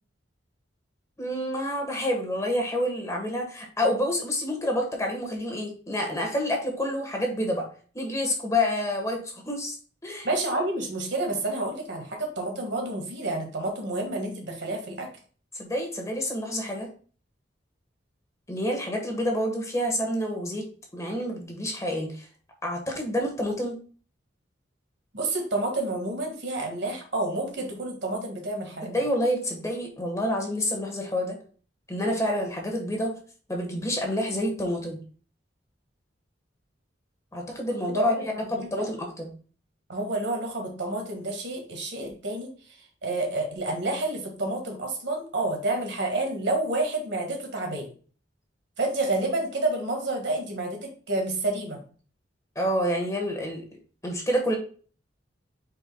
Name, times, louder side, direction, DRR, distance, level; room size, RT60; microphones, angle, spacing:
voice 1, 1.2-7.7 7.9-9.8 10.0-10.3 15.6-16.9 18.5-20.7 20.9-22.3 22.6-23.8 28.8-31.4 31.9-33.1 33.5-35.0 37.3-38.1 38.5-39.3 52.5-53.6 54.0-54.6, left 1 dB, 15° left, 2 dB, 1.4 m, -28 dB
voice 2, 10.2-15.1 25.1-28.9 37.9-38.1 38.4-38.9 39.9-42.5 43.0-47.9 48.8-51.8, right 2 dB, 70° right, 3 dB, 1.8 m, -29 dB
9.0 x 4.6 x 2.3 m, 0.41 s
head